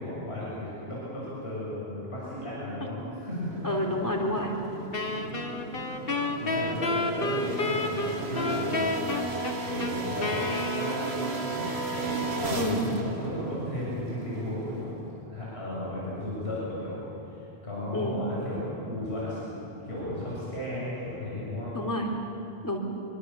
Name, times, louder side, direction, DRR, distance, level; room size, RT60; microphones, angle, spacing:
voice 1, 0.0-3.5 6.4-15.0 15.3-17.0 17.6-21.7, left 1 dB, 85° left, -8 dB, 7.5 m, -35 dB
sound 1, 3.4-15.2, right 2 dB, 80° right, 2.4 m, -35 dB
voice 2, 3.6-4.5 12.5-12.8 17.9-18.2 21.7-22.1 22.6-22.8, left 1 dB, 15° left, 1 dB, 3.6 m, -28 dB
Wind instrument woodwind instrument, 4.9-11.5, left 2 dB, 60° left, 1.9 m, -31 dB
26.5 x 23.0 x 7.3 m, 2.8 s
omnidirectional pair, 1.1 m